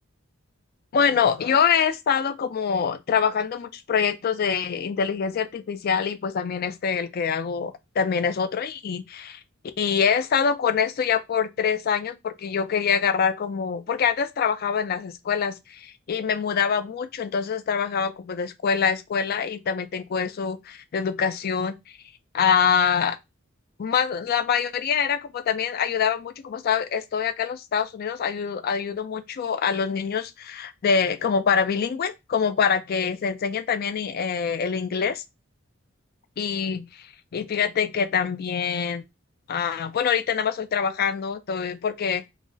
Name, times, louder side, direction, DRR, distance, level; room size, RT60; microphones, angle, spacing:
voice 1, 0.9-9.4 9.8-21.7 22.3-23.1 23.8-35.2 36.4-36.9 37.3-39.0 39.5-42.2, left 6 dB, 50° left, 0.4 m, -25 dB
2.5 x 2.1 x 3.7 m
head